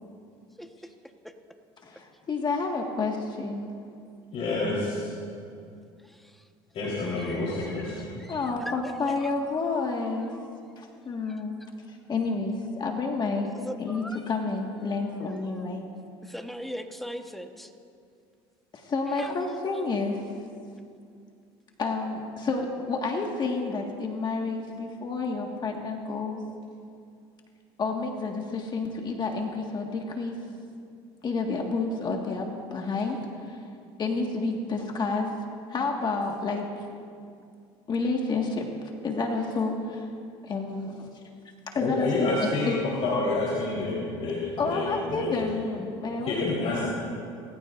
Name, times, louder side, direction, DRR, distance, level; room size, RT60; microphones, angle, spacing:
voice 1, 0.6-0.9 1.2-1.3 6.0-6.5 7.2-8.9 9.2-9.3 9.7-9.8 10.0-10.6 11.3-11.7 13.5-14.2 15.3-15.6 16.2-17.7 19.1-19.9, equal, ahead, 5 dB, 1.2 m, -41 dB
voice 2, 1.8-3.7 8.3-10.3 10.8-11.6 11.9-13.5 13.8-15.8 18.7-20.2 21.8-26.4 27.8-30.4 31.2-33.7 34.0-35.3 35.7-36.9 37.9-38.7 39.0-40.1 40.4-41.1 41.7-42.8 44.6-46.3 46.6-46.8, left 3 dB, 35° left, 1 dB, 1.7 m, -30 dB
voice 3, 4.3-5.1 6.7-8.1 41.8-42.8 43.0-45.3 46.2-46.9, left 2 dB, 55° left, -6 dB, 3.9 m, -28 dB
29.5 x 14.5 x 2.6 m, 2.4 s
supercardioid pair, 95°, 13 cm